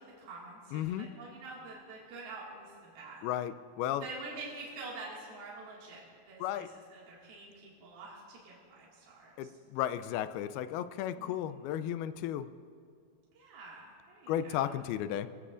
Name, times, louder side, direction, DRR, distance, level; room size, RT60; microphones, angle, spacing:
voice 1, 0.0-3.2 4.0-6.6 6.9-9.5 11.2-11.6 13.3-14.7, right 3 dB, 80° right, -6 dB, 3.9 m, -47 dB
voice 2, 0.7-1.1 3.2-4.1 6.4-6.7 9.4-12.5 14.3-15.3, left 11 dB, 85° left, 13 dB, 2.5 m, -34 dB
23.5 x 16.5 x 2.5 m, 2.1 s
omnidirectional pair, 4.4 m